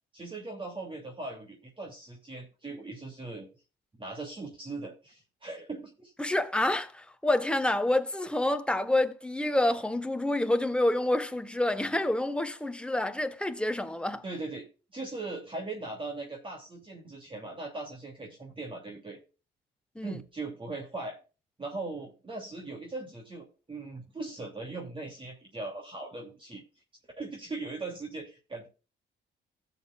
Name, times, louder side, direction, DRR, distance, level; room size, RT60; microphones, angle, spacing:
voice 1, 0.1-3.5 4.0-6.1 14.2-14.6 14.9-19.2 20.0-21.2 21.6-26.6 27.2-28.7, right 3 dB, 25° right, 2.8 m, -39 dB
voice 2, 6.2-14.2 19.9-20.2, left 1 dB, 5° left, 1.2 m, -28 dB
16.0 x 7.7 x 2.4 m
cardioid pair, 90°, 20 cm